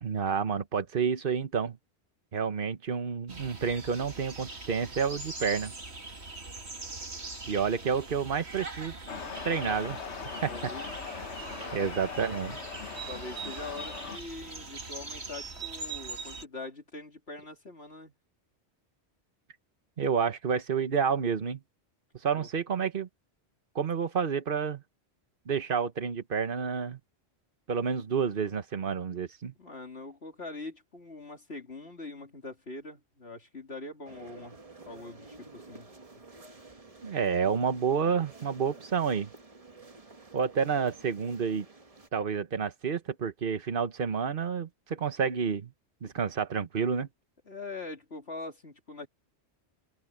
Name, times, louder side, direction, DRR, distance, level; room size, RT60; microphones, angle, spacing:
voice 1, 0.0-1.8 2.3-5.7 7.5-8.9 9.4-10.0 10.4-10.5 11.7-12.6 20.0-21.6 22.2-23.1 23.7-24.8 25.5-27.0 27.7-29.5 37.0-39.3 40.3-41.7 42.1-45.7 46.0-47.1, right 6 dB, 55° right, 1.3 m, -29 dB
sound 1, 3.3-16.5, right 3 dB, 75° right, 2.9 m, -42 dB
sound 2, 9.1-14.2, left 6 dB, 90° left, 1.6 m, -40 dB
voice 2, 10.3-10.9 11.3-11.9 12.8-18.1 22.3-22.5 29.6-34.6 34.9-35.9 36.2-36.3 47.5-49.1, left 2 dB, 70° left, 3.4 m, -43 dB
sound 3, 34.0-42.1, right 3 dB, 35° right, 1.3 m, -51 dB
open air
omnidirectional pair, 1.1 m